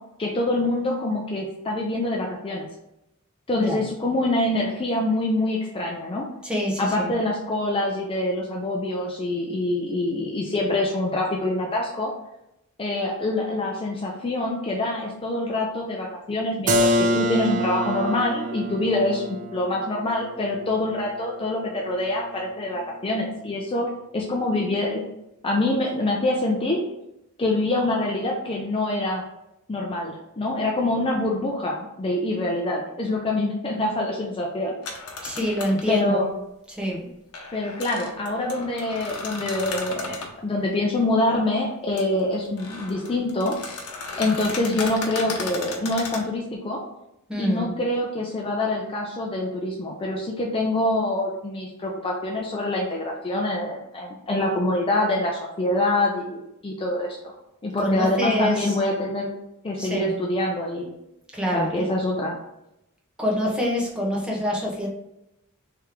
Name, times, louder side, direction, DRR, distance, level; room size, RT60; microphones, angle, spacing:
voice 1, 0.2-2.7 3.5-6.3 6.8-12.1 12.8-23.9 24.1-25.0 25.4-26.8 27.4-29.2 29.7-34.7 35.9-36.3 37.5-43.6 44.2-46.8 47.4-57.2 57.6-59.3 59.6-60.9 61.5-62.4, left 2 dB, 25° left, -1 dB, 0.4 m, -25 dB
voice 2, 3.5-3.8 6.4-7.1 35.2-36.3 36.7-37.1 47.3-47.7 57.8-58.8 59.8-60.1 61.3-61.9 63.2-64.9, equal, 5° right, -3 dB, 0.8 m, -26 dB
Keyboard (musical), 16.7-22.3, equal, 35° right, 0.4 m, -27 dB
sound 1, 34.8-35.9 37.3-40.3 42.0-42.1 42.4-46.2, left 3 dB, 90° left, 0.8 m, -35 dB
3.3 x 3.1 x 3.6 m, 0.87 s
head